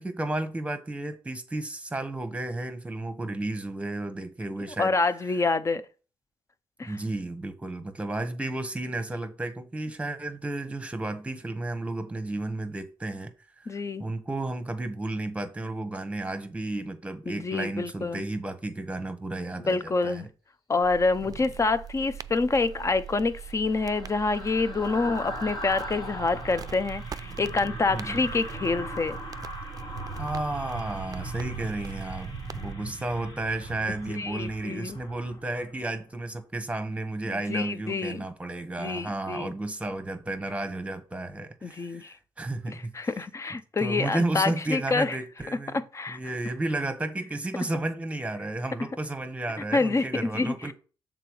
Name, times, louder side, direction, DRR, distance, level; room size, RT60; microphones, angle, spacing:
voice 1, 0.0-4.9 6.9-20.3 21.2-21.3 27.9-28.3 30.2-43.0 43.8-45.8 46.1-50.7, right 2 dB, 15° right, 1.1 m, -33 dB
voice 2, 4.8-5.8 6.8-6.9 13.7-14.0 17.3-18.2 19.6-20.3 20.7-29.2 34.1-35.0 37.3-38.2 38.8-39.5 41.6-42.1 42.7-45.2 45.7-46.2 49.7-50.7, left 3 dB, 30° left, 0.6 m, -27 dB
sound 1, 20.8-32.7, right 9 dB, 40° right, 0.4 m, -42 dB
sound 2, 22.5-35.9 36.2-36.4, right 1 dB, 50° left, 1.8 m, -39 dB
6.7 x 3.9 x 4.7 m
cardioid pair, 70°, 10 cm